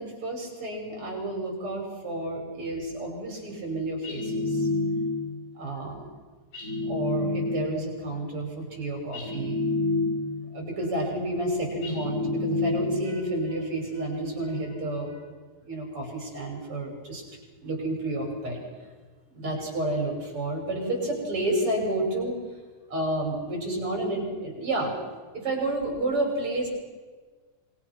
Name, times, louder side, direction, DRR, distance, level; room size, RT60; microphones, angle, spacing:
voice 1, 0.0-4.7 5.6-6.1 6.9-9.6 10.5-15.2 15.7-17.2 17.6-18.6 19.3-22.4 22.9-24.9 25.3-26.7, right 1 dB, 40° right, 1 dB, 6.9 m, -30 dB
sound 1, 4.0-5.4 6.5-7.9 9.1-10.5 11.8-13.2, left 2 dB, 85° left, 9.5 m, -28 dB
27.0 x 22.0 x 6.1 m, 1.4 s
omnidirectional pair, 3.7 m